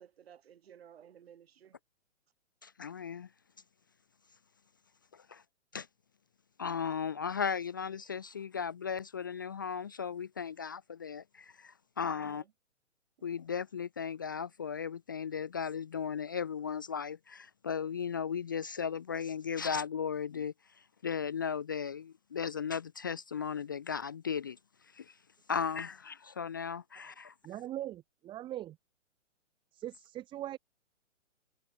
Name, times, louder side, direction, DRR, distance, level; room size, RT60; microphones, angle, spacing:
voice 1, 0.0-1.8 12.0-12.5 25.6-25.8, right 9 dB, 50° right, 7.0 m, -56 dB
voice 2, 2.6-3.3 5.1-5.4 5.7-5.9 6.6-12.4 13.2-20.5 21.0-24.6 24.9-25.1 25.5-27.3, left 7 dB, 15° left, 0.5 m, -36 dB
voice 3, 27.4-28.8 29.7-30.6, right 13 dB, 15° right, 2.4 m, -40 dB
hypercardioid pair, 160°, 38 cm